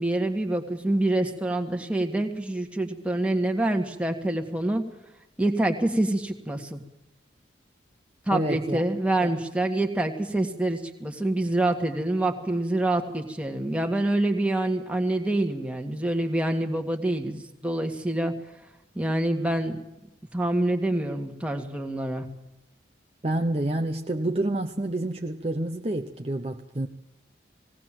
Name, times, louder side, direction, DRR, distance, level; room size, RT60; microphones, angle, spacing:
voice 1, 0.0-4.8 5.4-6.8 8.3-18.3 19.0-19.8 20.3-22.3, right 1 dB, 5° right, 3 dB, 1.8 m, -26 dB
voice 2, 8.3-8.8 9.2-9.3 23.2-26.9, right 1 dB, 30° right, 4 dB, 0.8 m, -28 dB
19.5 x 18.0 x 7.6 m, 0.90 s
head